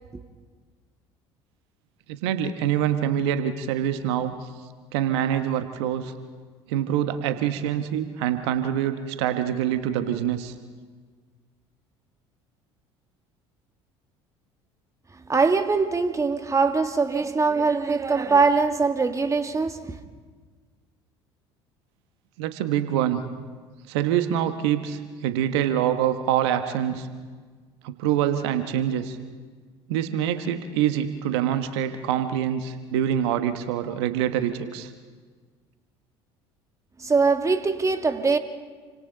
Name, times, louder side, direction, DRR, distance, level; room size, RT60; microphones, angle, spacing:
voice 1, 2.1-4.3 4.9-6.1 6.7-10.5 22.4-23.3 23.9-27.1 27.8-29.2 29.9-34.9, right 10 dB, 70° right, 1.2 m, -25 dB
voice 2, 15.3-20.0 37.0-38.4, right 4 dB, 20° right, 1.6 m, -22 dB
29.0 x 25.5 x 3.9 m
hypercardioid pair, 65°, 14 cm